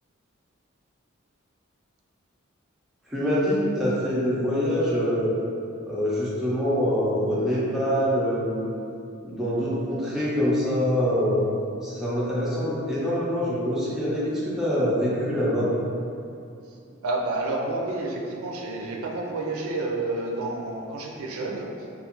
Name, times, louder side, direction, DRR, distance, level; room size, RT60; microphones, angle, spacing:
voice 1, 3.1-5.3 5.9-8.8 9.2-11.4 11.8-15.7, equal, ahead, -9 dB, 0.5 m, -25 dB
voice 2, 17.0-21.7, right 2 dB, 85° right, -1 dB, 0.4 m, -29 dB
2.4 x 2.3 x 2.9 m, 2.5 s
head